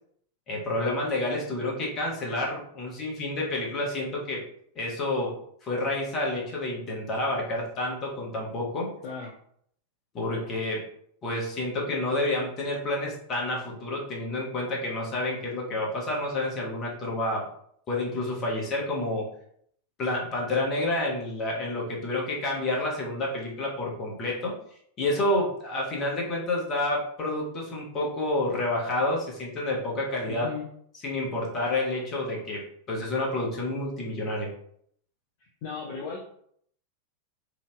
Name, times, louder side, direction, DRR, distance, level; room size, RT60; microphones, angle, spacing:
voice 1, 0.5-4.4 4.7-5.4 5.6-8.9 10.1-10.9 11.2-17.5 17.9-19.3 20.0-24.5 25.0-30.5 31.0-34.5, left 2 dB, 30° left, -2 dB, 1.1 m, -29 dB
voice 2, 30.3-30.6 35.4-36.2, left 5 dB, 50° left, -3 dB, 0.5 m, -36 dB
3.8 x 2.6 x 2.2 m, 0.67 s
figure-of-eight pair, 90°, 0 cm